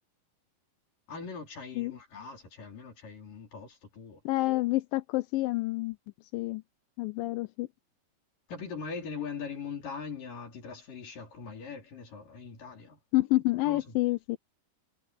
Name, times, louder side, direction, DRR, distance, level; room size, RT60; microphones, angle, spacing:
voice 1, 1.1-4.2 8.5-13.0 13.6-14.0, left 5 dB, 60° left, 6.1 m, -41 dB
voice 2, 4.3-6.0 6.3-6.6 7.0-7.7 13.1-14.4, left 19 dB, 80° left, 2.1 m, -28 dB
omnidirectional pair, 4.4 m